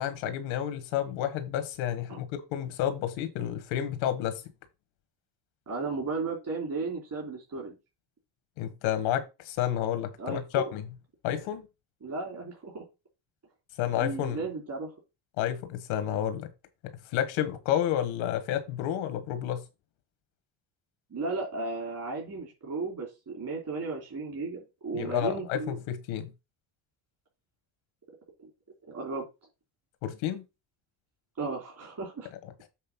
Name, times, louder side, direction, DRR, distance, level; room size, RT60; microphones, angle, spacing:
voice 1, 0.0-4.4 8.6-10.8 11.2-11.6 13.8-14.4 15.4-16.5 16.8-19.6 24.9-26.3 30.0-30.4, left 11 dB, 85° left, 1.6 m, -30 dB
voice 2, 5.7-7.8 10.2-10.7 11.3-11.4 12.0-12.8 14.0-14.9 21.1-25.8 28.4-28.5 28.8-29.2 31.4-32.3, right 3 dB, 40° right, 3.2 m, -35 dB
7.7 x 3.2 x 6.1 m
supercardioid pair, 85°, 46 cm